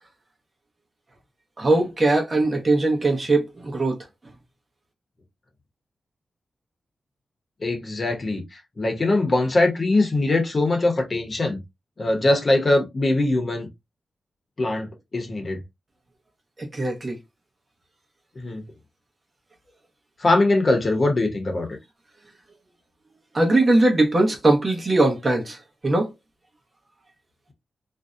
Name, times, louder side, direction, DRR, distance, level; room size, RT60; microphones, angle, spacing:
voice 1, 1.6-4.0 16.7-17.2 23.3-25.6 25.8-26.1, right 2 dB, 35° right, 0.8 m, -20 dB
voice 2, 7.6-8.4 8.8-11.6 12.0-13.7 14.6-15.6 18.4-18.6 20.2-21.7, left 2 dB, 40° left, 0.7 m, -22 dB
2.6 x 2.1 x 2.4 m
wide cardioid pair, 95°, 0 cm